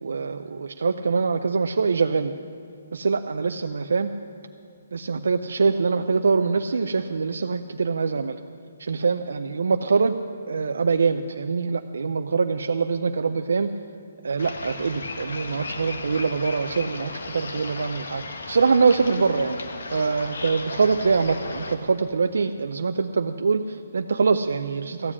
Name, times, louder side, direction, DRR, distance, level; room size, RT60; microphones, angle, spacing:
voice 1, 0.0-2.3 2.9-4.1 4.9-8.4 8.8-10.2 10.5-13.7 14.2-19.6 19.9-25.1, right 4 dB, 75° right, 7 dB, 0.5 m, -24 dB
sound 1, 14.4-21.7, left 3 dB, 75° left, 1.4 m, -35 dB
14.0 x 7.4 x 9.8 m, 2.4 s
hypercardioid pair, 175°, 0 cm